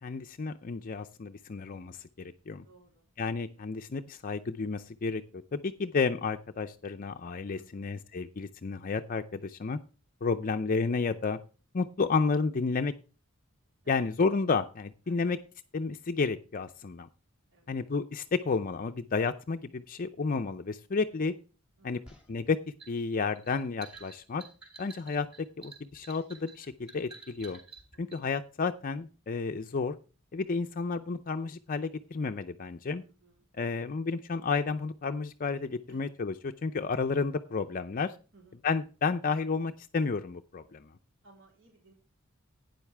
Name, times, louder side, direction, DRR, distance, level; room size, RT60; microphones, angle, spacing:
voice 1, 0.0-2.6 3.2-9.8 10.2-11.4 11.7-12.9 13.9-15.4 15.7-17.1 17.7-21.3 21.8-22.0 22.3-22.6 22.9-24.4 24.8-27.6 28.0-30.0 30.3-33.0 33.6-38.1 38.6-40.9, left 4 dB, 40° left, 7 dB, 0.5 m, -31 dB
voice 2, 2.6-3.1 7.6-7.9 13.8-14.1 15.1-15.4 17.5-17.8 21.8-22.1 28.1-28.4 33.2-33.8 35.9-36.0 38.3-38.6 41.2-41.9, right 3 dB, 65° right, 0 dB, 3.7 m, -60 dB
sound 1, 22.1-28.2, right 4 dB, 5° right, 2.5 m, -51 dB
12.0 x 9.3 x 3.4 m, 0.35 s
head